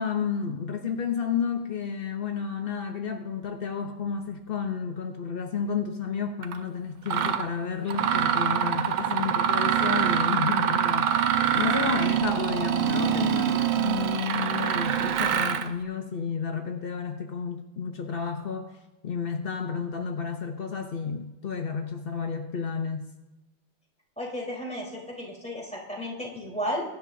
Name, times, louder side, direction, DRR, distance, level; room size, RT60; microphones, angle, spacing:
voice 1, 0.0-18.7 19.0-23.1, left 6 dB, 65° left, 5 dB, 0.5 m, -31 dB
Mechanisms, 6.4-6.6 7.1-7.5 7.9-15.7, right 9 dB, 85° right, 1.6 m, -25 dB
voice 2, 24.2-26.8, equal, 5° left, -4 dB, 3.6 m, -33 dB
23.0 x 10.5 x 2.7 m, 1.0 s
omnidirectional pair, 2.1 m